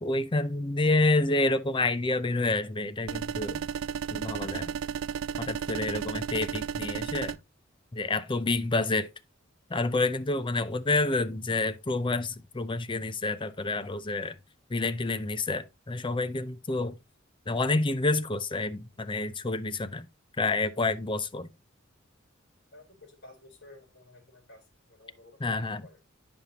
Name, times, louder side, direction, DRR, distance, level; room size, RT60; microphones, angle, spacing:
voice 1, 0.0-3.6 4.1-4.7 5.4-7.4 7.9-9.1 9.7-14.4 14.7-17.0 17.5-20.1 20.4-21.5 25.4-25.8, left 2 dB, 25° left, 0.6 m, -28 dB
sound 1, 3.1-7.4, right 7 dB, 70° right, 0.4 m, -33 dB
voice 2, 22.7-24.6 24.9-26.0, left 2 dB, 55° left, 3.6 m, -53 dB
9.8 x 5.3 x 2.9 m
head